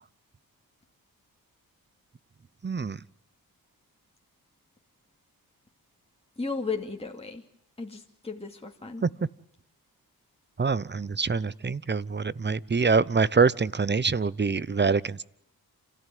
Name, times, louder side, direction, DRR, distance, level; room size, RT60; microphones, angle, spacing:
voice 1, 2.6-3.0 9.0-9.1 10.6-15.2, right 4 dB, 30° right, 0.8 m, -25 dB
voice 2, 6.4-7.4 7.8-9.0, left 4 dB, 15° left, 2.7 m, -34 dB
28.5 x 14.0 x 9.4 m
cardioid pair, 60°, 38 cm